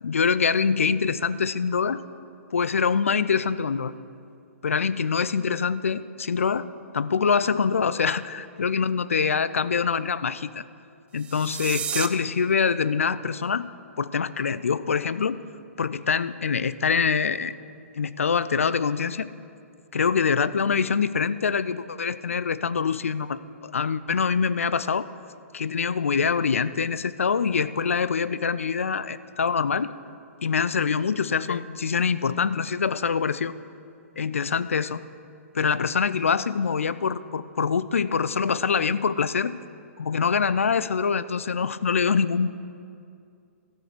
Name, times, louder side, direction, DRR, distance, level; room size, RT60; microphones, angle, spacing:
voice 1, 0.0-2.0 2.5-3.9 4.6-6.7 6.9-10.6 11.1-13.7 14.0-15.4 15.8-17.6 18.0-19.3 19.9-25.1 25.5-29.9 30.4-33.5 34.2-35.0 35.5-39.5 40.0-42.5, left 6 dB, 70° left, 15 dB, 0.4 m, -24 dB
sound 1, 11.1-12.1, right 9 dB, 15° right, 0.4 m, -31 dB
13.5 x 6.9 x 6.2 m, 2.4 s
figure-of-eight pair, 115°, 8 cm